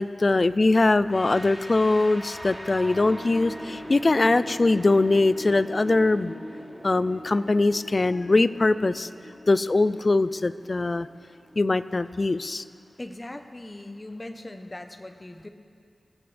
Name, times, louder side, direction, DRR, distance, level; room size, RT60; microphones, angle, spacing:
voice 1, 0.0-6.4 6.8-9.1 9.5-11.1 11.6-12.6, left 2 dB, 40° left, 15 dB, 0.4 m, -22 dB
sound 1, 1.1-11.9, equal, 5° left, 2.9 m, -41 dB
voice 2, 13.0-15.5, left 1 dB, 25° left, 7 dB, 0.9 m, -40 dB
27.0 x 15.0 x 3.4 m, 2.3 s
wide cardioid pair, 90°, 0 cm